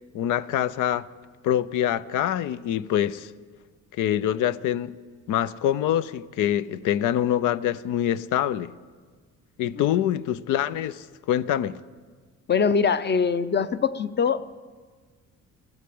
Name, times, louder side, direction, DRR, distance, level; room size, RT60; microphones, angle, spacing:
voice 1, 0.1-1.1 1.4-3.3 3.9-4.9 5.3-8.7 9.6-11.8, left 11 dB, 85° left, 0.6 m, -25 dB
voice 2, 12.5-14.5, left 6 dB, 35° left, 0.7 m, -23 dB
16.0 x 12.0 x 7.7 m
cardioid pair, 90°, 30 cm